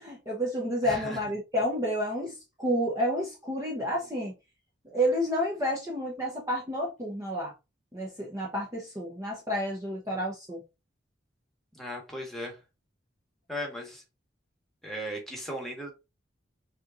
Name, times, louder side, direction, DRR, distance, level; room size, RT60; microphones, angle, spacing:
voice 1, 0.0-4.3 4.8-7.5 7.9-10.6, equal, 15° right, 0.9 m, -30 dB
voice 2, 0.8-1.2 11.7-12.6 13.5-14.0 14.8-15.9, equal, ahead, 1.4 m, -36 dB
6.4 x 3.0 x 2.5 m
head